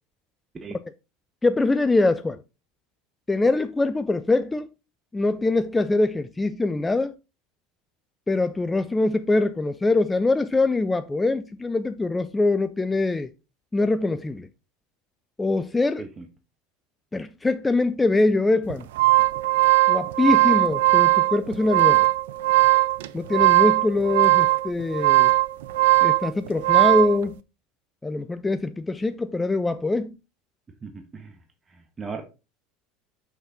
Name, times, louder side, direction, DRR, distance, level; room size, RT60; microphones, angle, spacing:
voice 1, 1.4-2.4 3.3-4.7 5.1-7.1 8.3-13.3 13.7-14.5 15.4-16.0 17.1-18.9 19.9-22.1 23.1-25.3 26.0-27.3 28.0-30.1, left 2 dB, 15° left, 0.5 m, -23 dB
sound 1, 18.7-27.2, right 18 dB, 80° right, 0.4 m, -19 dB
voice 2, 30.8-31.3 31.7-32.2, right 5 dB, 25° right, 1.4 m, -37 dB
6.0 x 5.9 x 4.0 m
hypercardioid pair, 90°, 0 cm